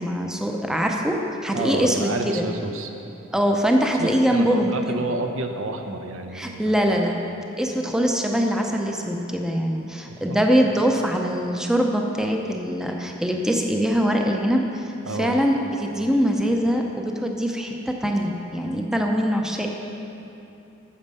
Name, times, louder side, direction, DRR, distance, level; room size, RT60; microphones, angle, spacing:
voice 1, 0.0-2.4 3.3-5.0 6.3-7.3 7.6-14.9 15.2-19.7, equal, 5° right, 1 dB, 0.5 m, -23 dB
voice 2, 1.5-2.9 4.0-6.8 10.1-10.4 15.1-15.3, right 2 dB, 80° right, 4 dB, 0.7 m, -30 dB
8.8 x 7.3 x 5.4 m, 2.8 s
head